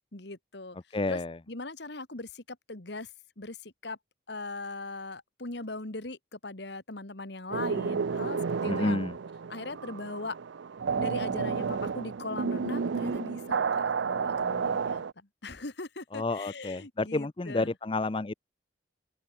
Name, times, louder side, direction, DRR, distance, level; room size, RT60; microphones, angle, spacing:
voice 1, 0.1-1.2 1.5-3.1 3.4-4.0 4.3-9.1 9.5-10.4 11.0-17.7, left 2 dB, 60° left, 1.9 m, -40 dB
voice 2, 0.9-1.4 8.7-9.1 16.1-18.3, left 2 dB, 25° left, 0.5 m, -30 dB
sound 1, 7.5-15.1, right 5 dB, 70° right, 0.5 m, -31 dB
open air
head